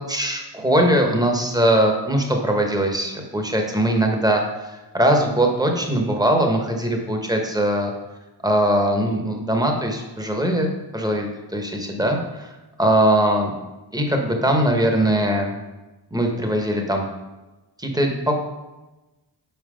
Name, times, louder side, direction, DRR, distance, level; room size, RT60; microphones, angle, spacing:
voice 1, 0.0-4.4 4.9-7.9 8.4-12.5 12.8-13.5 13.9-15.6 16.1-17.0 17.8-18.4, right 1 dB, 10° right, 2 dB, 1.0 m, -21 dB
5.6 x 4.5 x 4.9 m, 1.1 s
wide cardioid pair, 115°, 42 cm